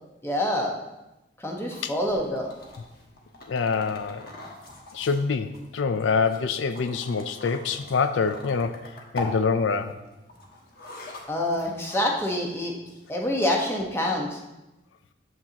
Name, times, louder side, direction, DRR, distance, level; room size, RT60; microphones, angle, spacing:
voice 1, 0.2-0.7 1.4-2.5 11.3-12.8 13.1-14.4, left 1 dB, 15° left, -1 dB, 1.0 m, -26 dB
sound 1, 1.7-13.4, left 2 dB, 55° left, 1.2 m, -43 dB
voice 2, 3.5-4.3 4.9-8.8 9.1-9.9, left 5 dB, 80° left, 10 dB, 0.4 m, -25 dB
8.4 x 7.3 x 2.9 m, 1.0 s
head